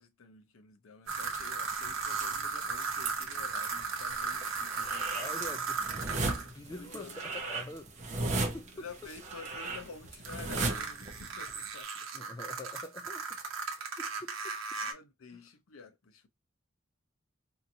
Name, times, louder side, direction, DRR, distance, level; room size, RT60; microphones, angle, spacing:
voice 1, 0.0-5.6 6.7-7.6 8.7-12.1 14.8-16.3, left 5 dB, 85° left, 0.6 m, -50 dB
sound 1, 1.1-11.7, right 2 dB, 35° right, 0.6 m, -38 dB
sound 2, 1.1-6.5 10.2-14.9, right 5 dB, 70° right, 0.8 m, -36 dB
voice 2, 5.1-5.8 6.3-8.9 12.1-15.0 15.3-15.4, left 1 dB, 20° left, 0.3 m, -46 dB
2.8 x 2.6 x 2.6 m
head